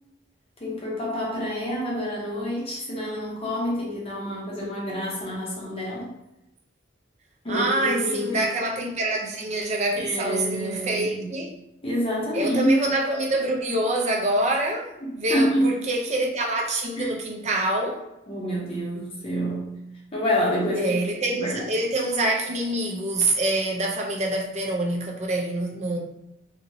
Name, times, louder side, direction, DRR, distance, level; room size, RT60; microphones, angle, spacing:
voice 1, 0.6-6.2 7.4-8.4 10.0-11.3 11.8-12.8 15.0-15.8 17.0-17.1 18.3-19.8 20.1-21.0 21.4-21.6, equal, 30° left, 0.7 m, -27 dB
voice 2, 7.5-11.5 12.3-18.0 20.8-26.0, right 2 dB, 35° right, 0.5 m, -26 dB
2.9 x 2.7 x 2.6 m
head